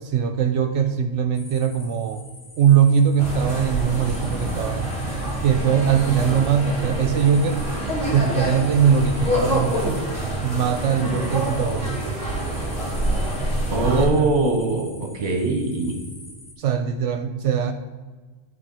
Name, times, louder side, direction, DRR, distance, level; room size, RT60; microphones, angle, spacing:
voice 1, 0.0-2.2 2.6-4.9 5.4-7.6 8.1-10.0 10.4-12.2 13.8-14.3 16.6-17.7, right 7 dB, 75° right, 8 dB, 0.9 m, -21 dB
sound 1, 1.3-16.5, left 2 dB, 75° left, 1.9 m, -46 dB
sound 2, 3.2-14.1, right 1 dB, 55° left, 2.8 m, -26 dB
sound 3, 5.5-11.3, equal, 10° right, 1.5 m, -41 dB
voice 2, 13.7-16.0, right 3 dB, 40° right, 2 dB, 1.2 m, -22 dB
10.5 x 4.0 x 5.4 m, 1.4 s
omnidirectional pair, 1.3 m